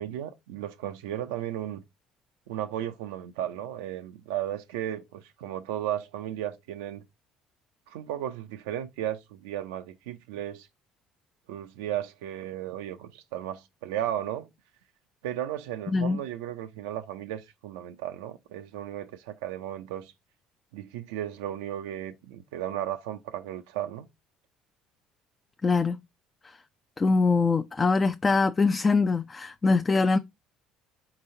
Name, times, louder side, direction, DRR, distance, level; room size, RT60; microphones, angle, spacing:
voice 1, 0.0-1.8 2.5-7.0 7.9-10.7 11.5-14.5 15.2-20.1 20.7-24.1, right 11 dB, 85° right, 0.4 m, -35 dB
voice 2, 15.9-16.2 25.6-26.0 27.0-30.2, left 4 dB, 30° left, 0.3 m, -23 dB
4.2 x 3.9 x 2.6 m
supercardioid pair, 75°, 0 cm